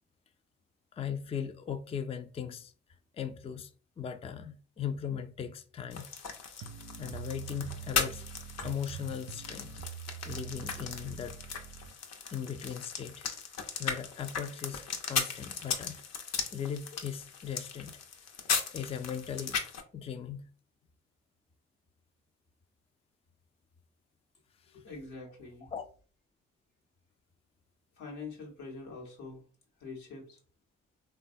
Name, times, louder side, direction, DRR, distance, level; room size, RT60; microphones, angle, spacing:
voice 1, 0.9-2.7 3.1-3.7 4.0-6.1 6.6-6.7 7.0-8.2 8.6-9.7 10.3-11.4 12.3-13.3 13.8-16.0 16.5-17.9 18.4-19.6 19.9-20.5 24.7-24.8 25.7-25.8, left 8 dB, 20° left, 0.3 m, -38 dB
sound 1, 5.9-19.8, left 6 dB, 60° left, 0.6 m, -37 dB
sound 2, 6.6-11.9, right 8 dB, 65° right, 0.4 m, -44 dB
voice 2, 24.7-25.7 28.0-29.4 29.8-30.4, left 3 dB, 85° left, 0.9 m, -44 dB
3.2 x 2.2 x 2.5 m
supercardioid pair, 45°, 29 cm